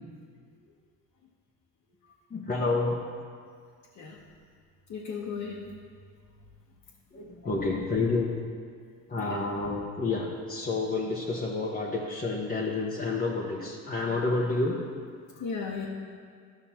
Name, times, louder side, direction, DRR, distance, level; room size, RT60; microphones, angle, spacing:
voice 1, 2.3-3.0 7.1-8.4 9.1-14.8, left 3 dB, 25° left, -4 dB, 1.1 m, -29 dB
voice 2, 4.9-5.6 15.4-15.9, left 5 dB, 55° left, -4 dB, 1.2 m, -35 dB
13.0 x 5.9 x 2.9 m, 2.1 s
supercardioid pair, 70°, 38 cm